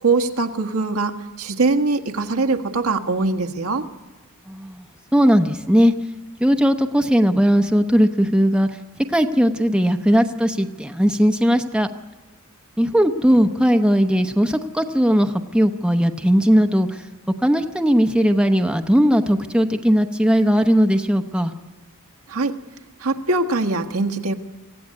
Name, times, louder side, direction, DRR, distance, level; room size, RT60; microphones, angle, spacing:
voice 1, 0.0-3.9 22.3-22.6 23.0-24.3, right 3 dB, 75° right, 5 dB, 1.5 m, -22 dB
voice 2, 4.5-4.8 5.1-5.9 6.4-8.7 9.1-11.9 12.8-17.0 17.4-21.5, equal, 5° right, 6 dB, 0.8 m, -18 dB
24.5 x 15.5 x 9.7 m, 1.2 s
head